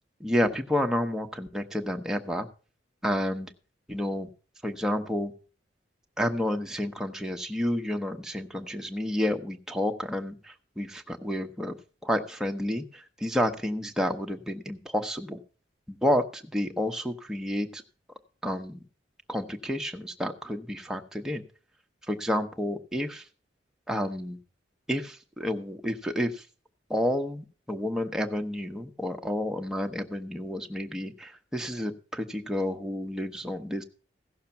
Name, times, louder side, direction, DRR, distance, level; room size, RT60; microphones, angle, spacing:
voice 1, 0.2-2.5 3.0-3.5 3.9-4.3 4.6-5.3 6.2-11.8 12.0-15.4 15.9-17.8 18.4-18.8 19.3-21.4 22.1-23.2 23.9-24.4 24.9-26.4 26.9-33.8, left 1 dB, 5° right, 3 dB, 0.9 m, -30 dB
15.5 x 6.6 x 5.7 m, 0.38 s
head